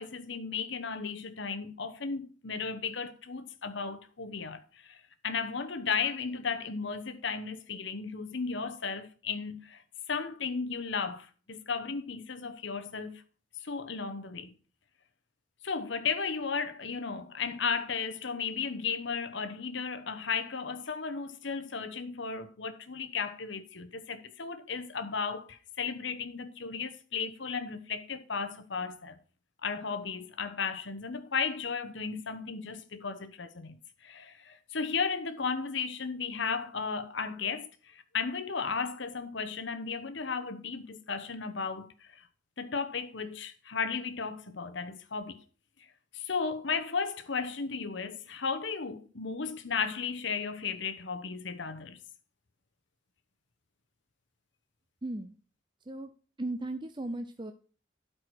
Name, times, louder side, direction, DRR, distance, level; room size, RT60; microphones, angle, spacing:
voice 1, 0.0-9.8 10.1-13.2 13.6-14.5 15.6-29.2 29.6-42.3 42.6-45.4 46.1-52.0, left 5 dB, 65° left, 1.0 m, -35 dB
voice 2, 55.0-55.4 55.9-56.1 56.4-57.5, right 2 dB, 25° right, 0.6 m, -36 dB
12.0 x 4.8 x 4.5 m
head